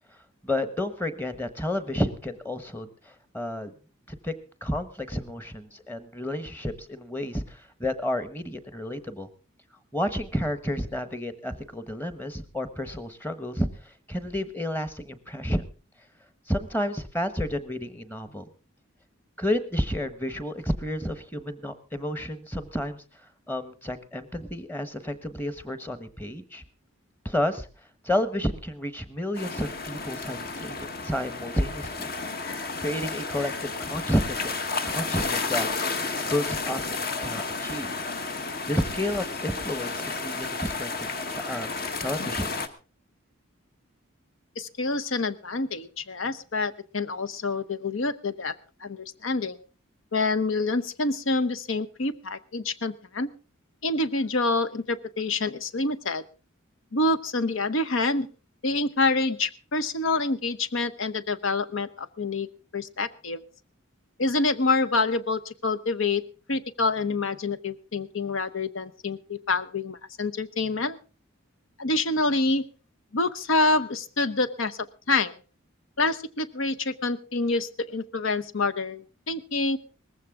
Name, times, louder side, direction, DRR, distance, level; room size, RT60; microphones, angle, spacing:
voice 1, 0.4-3.7 4.1-4.3 4.6-9.3 9.9-15.6 16.5-18.4 19.4-23.0 23.5-26.6 27.2-27.7 28.0-32.1 32.8-34.5 34.8-35.7 36.3-37.9 38.7-40.9 41.5-42.5, left 1 dB, 10° left, 12 dB, 1.1 m, -31 dB
sound 1, 29.3-42.7, left 3 dB, 45° left, 1.3 m, -32 dB
voice 2, 44.6-48.5 48.8-49.6 50.1-53.3 53.8-56.2 56.9-58.3 58.6-62.5 62.7-63.4 64.2-66.2 66.5-71.0 71.8-72.6 73.1-74.8 75.1-75.3 76.0-79.8, left 3 dB, 70° left, 13 dB, 0.9 m, -27 dB
19.5 x 15.0 x 3.6 m, 0.34 s
head